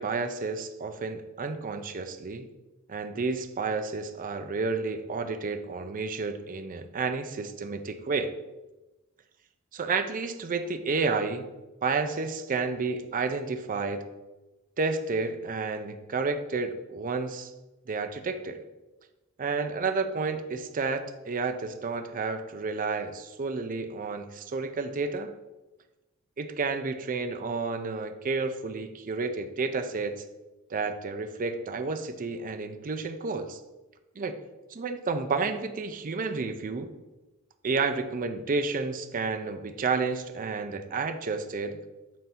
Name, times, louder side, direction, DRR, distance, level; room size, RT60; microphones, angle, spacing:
voice 1, 0.0-2.5 2.9-8.3 9.7-11.5 11.8-14.0 14.8-17.5 17.9-18.6 19.4-25.3 26.4-30.2 30.7-33.6 34.2-34.3 34.7-36.9 37.6-41.8, right 4 dB, 40° right, 8 dB, 0.5 m, -31 dB
7.5 x 2.7 x 5.7 m, 1.1 s
head